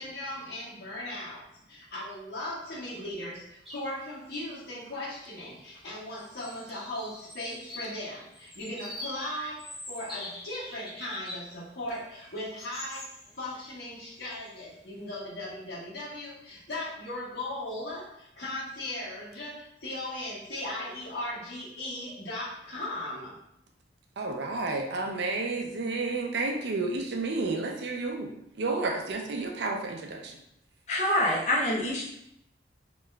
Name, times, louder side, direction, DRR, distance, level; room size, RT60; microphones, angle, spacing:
voice 1, 0.0-13.1 13.4-23.4, left 1 dB, 70° left, -7 dB, 1.2 m, -38 dB
sound 1, 3.7-3.9 4.3-4.4 5.4-5.8 6.1-11.5 11.9-14.6, left 1 dB, ahead, 0.6 m, -44 dB
voice 2, 24.2-30.4, right 3 dB, 70° right, 2 dB, 0.5 m, -31 dB
voice 3, 30.9-32.0, left 1 dB, 40° left, -3 dB, 0.7 m, -26 dB
2.9 x 2.3 x 3.2 m, 0.78 s
head